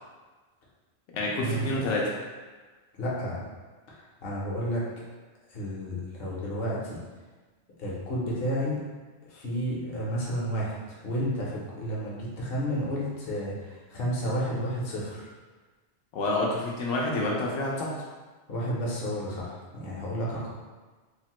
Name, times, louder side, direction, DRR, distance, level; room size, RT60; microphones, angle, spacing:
voice 1, 1.1-2.0 16.1-17.9, left 2 dB, 90° left, -3 dB, 0.9 m, -28 dB
voice 2, 2.9-3.4 3.9-4.8 5.5-7.0 7.8-8.8 9.3-15.3 18.5-20.5, equal, 60° left, -6 dB, 0.9 m, -31 dB
3.2 x 2.0 x 2.9 m, 1.3 s
omnidirectional pair, 1.2 m